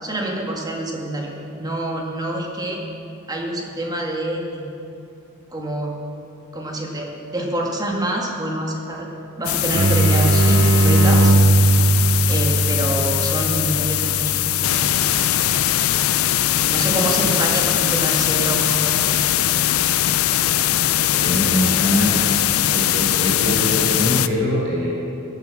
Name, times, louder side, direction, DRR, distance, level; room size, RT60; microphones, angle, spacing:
voice 1, 0.0-1.3 1.6-2.8 3.3-4.9 5.5-5.9 6.5-9.1 9.4-11.3 12.3-14.4 14.7-15.4 16.7-19.2, right 1 dB, 20° right, 0 dB, 1.9 m, -26 dB
sound 1, 9.4-24.3, left 12 dB, 80° left, 0.5 m, -20 dB
sound 2, 9.7-15.2, right 2 dB, 80° right, 0.7 m, -18 dB
voice 2, 21.1-22.3 22.7-24.9, left 1 dB, 55° right, -5 dB, 4.0 m, -23 dB
15.5 x 9.3 x 7.7 m, 2.7 s
head